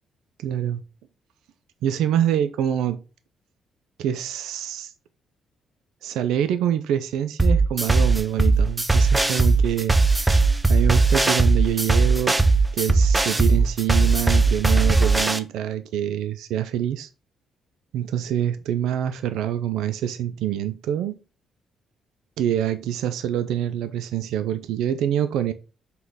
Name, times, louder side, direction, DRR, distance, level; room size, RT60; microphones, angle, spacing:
voice 1, 0.4-0.8 1.8-3.0 4.0-4.9 6.0-17.1 17.9-21.2 22.4-25.5, right 10 dB, 85° right, 11 dB, 0.5 m, -26 dB
sound 1, 7.4-15.4, right 3 dB, 15° right, 0.6 m, -18 dB
5.8 x 3.8 x 4.7 m, 0.32 s
cardioid pair, 90°, 0 cm